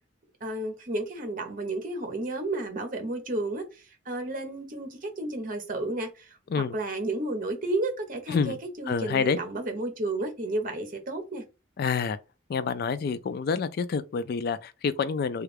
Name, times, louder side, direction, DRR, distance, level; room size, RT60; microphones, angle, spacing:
voice 1, 0.4-11.4, right 2 dB, 45° right, 0.9 m, -32 dB
voice 2, 8.9-9.4 11.8-12.2 12.5-15.4, left 5 dB, 55° left, 0.3 m, -28 dB
3.2 x 2.4 x 3.3 m
head